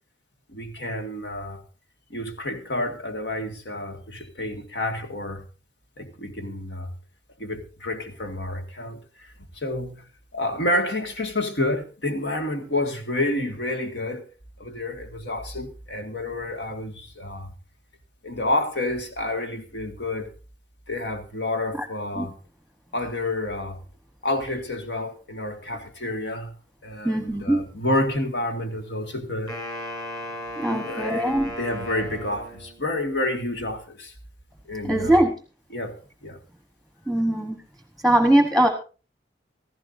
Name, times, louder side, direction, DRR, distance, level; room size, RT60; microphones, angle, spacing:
voice 1, 0.5-1.6 2.1-5.4 6.0-6.9 7.4-10.0 10.3-14.2 14.6-17.5 18.2-20.3 20.9-22.3 22.9-23.8 24.2-26.5 26.8-29.5 30.6-34.1 34.7-35.2 35.7-36.4, left 1 dB, 85° left, 2.0 m, -29 dB
voice 2, 27.0-27.6 30.6-31.5 34.8-35.3 37.1-37.6 38.0-38.7, right 1 dB, ahead, 1.2 m, -21 dB
Wind instrument woodwind instrument, 29.5-32.9, equal, 25° left, 5.2 m, -35 dB
16.0 x 14.5 x 2.7 m
head